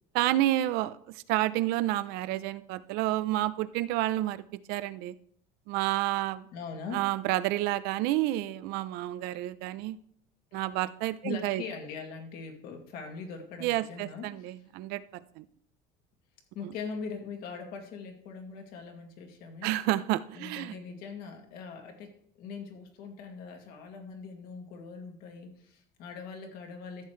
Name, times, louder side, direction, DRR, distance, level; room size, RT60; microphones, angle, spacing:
voice 1, 0.1-1.0 1.3-4.4 4.7-5.1 5.7-6.5 6.9-10.0 10.5-11.6 13.6-15.4 19.6-20.7, right 15 dB, 65° right, 15 dB, 0.6 m, -29 dB
voice 2, 6.5-7.1 11.2-14.5 16.5-19.7 20.3-27.0, left 5 dB, 60° left, 3 dB, 2.2 m, -41 dB
14.0 x 7.5 x 3.3 m, 0.64 s
cardioid pair, 145°, 18 cm